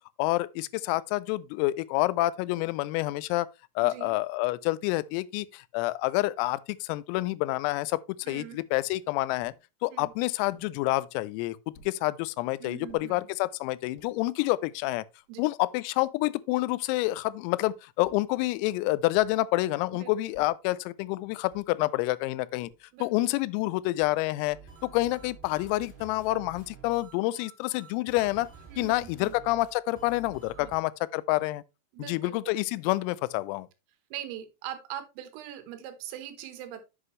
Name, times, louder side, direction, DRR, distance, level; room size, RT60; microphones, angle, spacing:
voice 1, 0.2-3.5 3.8-8.0 8.3-9.5 9.8-15.0 15.4-22.7 23.0-24.6 24.8-28.5 28.8-31.6 32.0-33.7, left 19 dB, 90° left, 3.3 m, -28 dB
voice 2, 8.3-8.6 9.9-10.1 12.6-13.2 15.3-15.4 19.9-20.1 22.9-23.1 28.7-29.4 30.6-30.7 31.9-32.4 34.1-36.8, right 11 dB, 80° right, 3.7 m, -41 dB
sound 1, 9.4-9.6 10.5-10.7 11.7-12.0 12.9-13.1 13.8-14.1 14.9-15.0 15.2-16.2 18.0-18.4 19.1-19.5 20.3-20.7 21.5-21.8 22.6-23.0 24.0-24.2 25.2-25.6, left 4 dB, 60° left, 3.2 m, -57 dB
sound 2, 24.4-30.8, right 5 dB, 15° right, 2.2 m, -50 dB
8.0 x 7.6 x 3.1 m
omnidirectional pair, 5.9 m